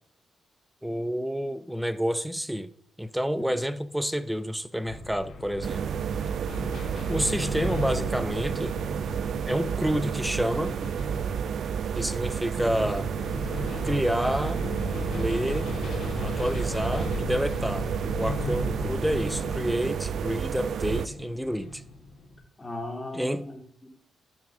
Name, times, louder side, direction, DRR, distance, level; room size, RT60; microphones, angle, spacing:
voice 1, 0.8-2.7 3.0-6.0 7.1-8.7 9.5-10.7 12.0-13.1 13.8-14.6 15.1-15.8 16.2-21.8 23.1-23.4, equal, 5° right, 0.7 m, -29 dB
sound 1, 4.8-22.4, left 3 dB, 75° left, 3.4 m, -36 dB
sound 2, 5.6-21.1, right 8 dB, 65° right, 0.3 m, -31 dB
voice 2, 22.6-23.9, left 2 dB, 20° left, 3.3 m, -38 dB
12.0 x 6.1 x 3.8 m
cardioid pair, 85°, 0 cm